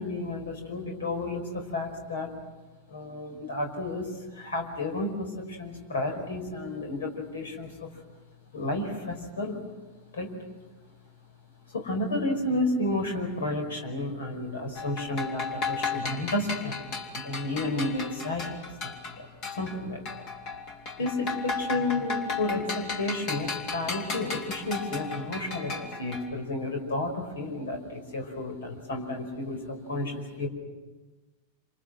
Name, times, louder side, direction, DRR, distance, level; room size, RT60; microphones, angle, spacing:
voice 1, 0.0-2.3 2.9-7.9 8.5-9.6 10.1-10.3 11.7-19.3 19.5-20.0 21.0-30.5, left 2 dB, 65° left, 4 dB, 5.2 m, -32 dB
sound 1, 14.8-19.8 20.1-26.3, left 4 dB, 40° left, 3.3 m, -35 dB
28.5 x 27.5 x 6.3 m, 1.2 s
figure-of-eight pair, 90°, 0 cm